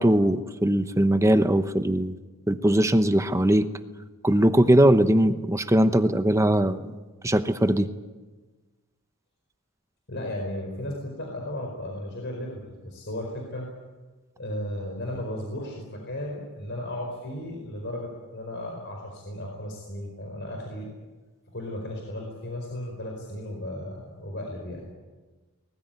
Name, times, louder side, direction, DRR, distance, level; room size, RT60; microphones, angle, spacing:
voice 1, 0.0-2.1 2.5-3.7 4.2-6.8 7.2-7.9, right 1 dB, 15° right, 10 dB, 0.9 m, -20 dB
voice 2, 10.1-13.7 14.4-20.9 21.5-24.9, left 1 dB, 50° left, 1 dB, 4.9 m, -35 dB
24.5 x 20.5 x 9.2 m, 1.3 s
head